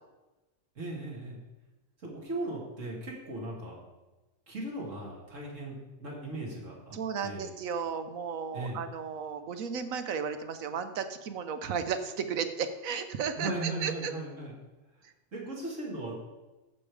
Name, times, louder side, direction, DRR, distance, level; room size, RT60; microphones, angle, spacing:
voice 1, 0.8-1.4 2.0-3.8 4.5-7.5 8.5-8.8 13.4-14.5 15.3-16.1, right 2 dB, 70° right, -3 dB, 2.8 m, -37 dB
voice 2, 6.9-14.1 15.0-15.1, right 6 dB, 90° right, 9 dB, 1.3 m, -34 dB
14.0 x 5.4 x 4.9 m, 1.1 s
omnidirectional pair, 1.4 m